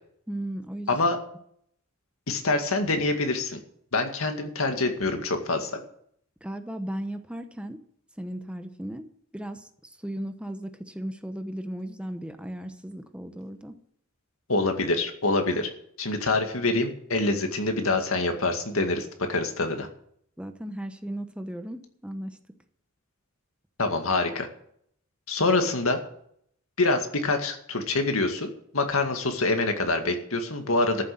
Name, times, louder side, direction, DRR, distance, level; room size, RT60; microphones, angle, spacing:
voice 1, 0.3-1.0 6.4-7.8 8.2-9.0 9.3-9.7 10.0-13.7 20.4-22.4, right 1 dB, 5° right, 7 dB, 0.9 m, -36 dB
voice 2, 2.3-3.6 3.9-5.8 14.5-15.7 16.0-19.9 23.8-24.5 25.3-26.0 26.8-31.0, left 2 dB, 80° left, 5 dB, 2.1 m, -25 dB
14.0 x 7.7 x 7.8 m, 0.68 s
head